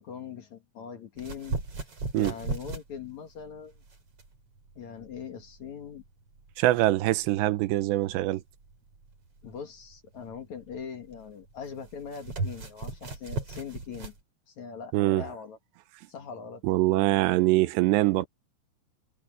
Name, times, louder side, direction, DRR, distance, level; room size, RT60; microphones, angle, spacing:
voice 1, 0.0-1.6 2.1-3.8 4.8-6.0 9.4-14.1 14.5-15.6 16.1-16.6, left 7 dB, 50° left, 2.6 m, -41 dB
sound 1, 1.2-14.2, right 3 dB, 35° right, 5.2 m, -38 dB
voice 2, 6.6-8.4 14.9-15.2 16.6-18.3, right 17 dB, 85° right, 3.1 m, -23 dB
omnidirectional pair, 4.9 m